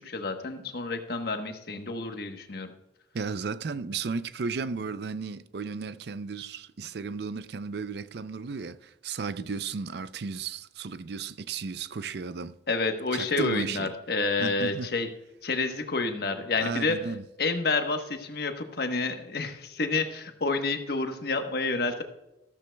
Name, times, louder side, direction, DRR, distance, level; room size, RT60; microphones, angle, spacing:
voice 1, 0.0-2.7 12.7-15.1 15.4-17.0 17.4-22.0, left 3 dB, 60° left, 1.1 m, -29 dB
voice 2, 3.1-12.5 13.1-13.9 14.4-14.9 16.6-17.2, right 5 dB, 60° right, 0.5 m, -34 dB
14.0 x 13.5 x 2.3 m
head